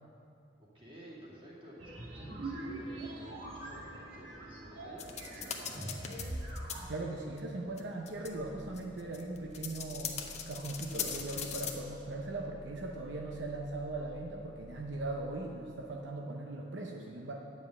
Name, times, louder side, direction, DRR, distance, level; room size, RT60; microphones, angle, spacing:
voice 1, 0.7-5.9, right 1 dB, 30° right, -6 dB, 2.3 m, -52 dB
sound 1, 1.8-7.0, right 1 dB, 85° right, 1.7 m, -42 dB
sound 2, 5.0-6.2 6.5-6.7 7.4-7.5 7.8-7.9 8.1-8.3 8.8-11.7, left 8 dB, 35° left, 0.7 m, -39 dB
voice 2, 6.9-10.2 10.5-17.3, right 2 dB, 70° right, 0 dB, 0.7 m, -39 dB
sound 3, 8.0-15.8, right 1 dB, 50° right, 1.5 m, -54 dB
9.7 x 5.2 x 7.9 m, 2.7 s
head